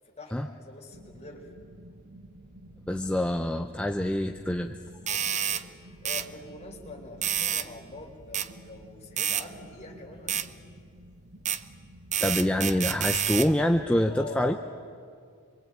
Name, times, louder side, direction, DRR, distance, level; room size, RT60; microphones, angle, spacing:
voice 1, 0.0-1.5 5.1-10.6 14.0-14.6, left 2 dB, 30° left, 0 dB, 4.3 m, -45 dB
sound 1, 0.9-13.9, right 1 dB, 55° right, 1.7 m, -50 dB
voice 2, 2.9-4.8 12.2-14.6, left 1 dB, 5° left, 5 dB, 0.7 m, -26 dB
sound 2, 5.1-5.6 6.1-6.3 7.2-7.7 8.3-8.5 9.2-9.5 10.3-10.5 11.5-11.6 12.1-13.5, right 9 dB, 30° right, 0.7 m, -28 dB
27.5 x 23.5 x 8.9 m, 2.2 s
head